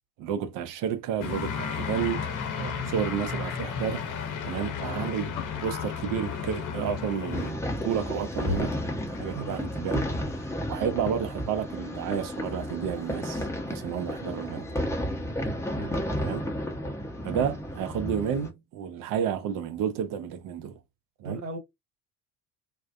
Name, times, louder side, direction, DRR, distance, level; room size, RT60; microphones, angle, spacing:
voice 1, 0.2-2.3 2.9-4.1 4.4-5.3 5.6-8.7 9.1-10.1 10.7-14.6 16.2-16.5 17.2-20.7 21.2-21.4, right 8 dB, 45° right, 0.7 m, -31 dB
sound 1, 1.2-3.0 4.0-6.7 7.0-7.3 7.6-11.2, left 7 dB, 80° left, 0.5 m, -43 dB
sound 2, 1.2-7.5, left 6 dB, 40° left, 0.9 m, -33 dB
voice 2, 2.6-2.9 9.3-9.6 15.7-16.0 21.2-21.6, right 3 dB, 90° right, 0.7 m, -38 dB
sound 3, 7.3-18.5, equal, 5° left, 0.7 m, -32 dB
2.4 x 2.2 x 2.4 m
figure-of-eight pair, 65°, 46 cm